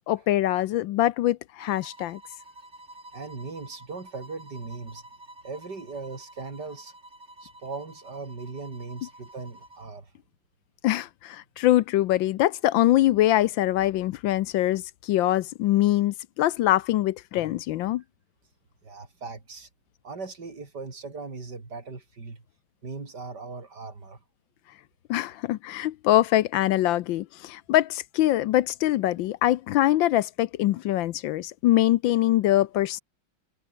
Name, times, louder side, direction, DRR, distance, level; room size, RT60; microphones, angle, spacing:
voice 1, 0.1-2.2 10.8-18.0 25.1-33.0, left 14 dB, 75° left, 1.3 m, -23 dB
sound 1, 1.6-10.0, right 1 dB, 30° right, 7.7 m, -49 dB
voice 2, 3.1-5.0 5.4-6.9 7.4-10.1 18.8-19.7 20.0-22.4 22.8-24.2, right 4 dB, 50° right, 4.6 m, -39 dB
omnidirectional pair, 2.3 m